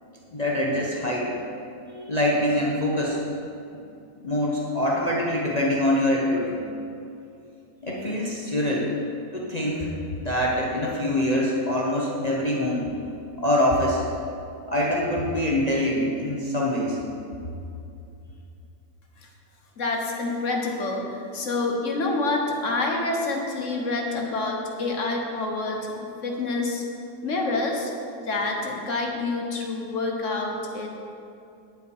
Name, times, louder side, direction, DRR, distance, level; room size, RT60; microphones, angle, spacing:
voice 1, 0.3-1.3 1.9-3.2 4.2-6.6 7.8-8.9 9.3-9.9 10.2-12.9 13.4-14.0 14.7-17.0, left 1 dB, 30° left, -4 dB, 1.0 m, -24 dB
voice 2, 19.8-26.8 27.2-27.9 28.3-30.9, left 3 dB, 55° left, 1 dB, 1.5 m, -27 dB
10.5 x 8.8 x 4.7 m, 2.6 s
omnidirectional pair, 1.6 m